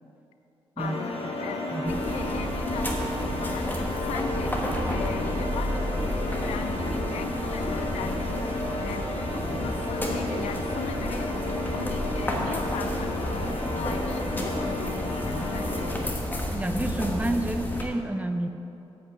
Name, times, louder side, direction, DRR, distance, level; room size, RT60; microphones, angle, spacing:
voice 1, 0.8-15.9, left 7 dB, 90° left, 9 dB, 0.5 m, -39 dB
sound 1, 0.8-15.9, left 1 dB, 65° left, 1.3 m, -32 dB
voice 2, 1.7-2.1 16.5-18.5, right 1 dB, 15° right, 8 dB, 0.5 m, -29 dB
sound 2, 1.9-17.8, left 1 dB, 20° left, 1.3 m, -31 dB
7.9 x 5.3 x 7.1 m, 2.8 s
cardioid pair, 80°, 11 cm